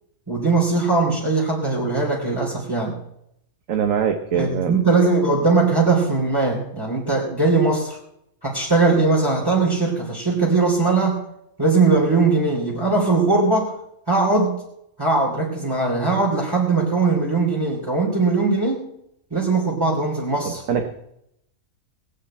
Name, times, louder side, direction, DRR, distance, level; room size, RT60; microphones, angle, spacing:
voice 1, 0.3-3.0 4.3-8.0 8.4-11.2 11.6-13.7 14.1-14.5 15.0-18.9 19.3-20.6, right 3 dB, 15° right, -5 dB, 3.0 m, -20 dB
voice 2, 3.7-4.8 20.4-20.9, right 7 dB, 65° right, 5 dB, 1.5 m, -23 dB
19.0 x 6.6 x 8.7 m, 0.77 s
omnidirectional pair, 1.5 m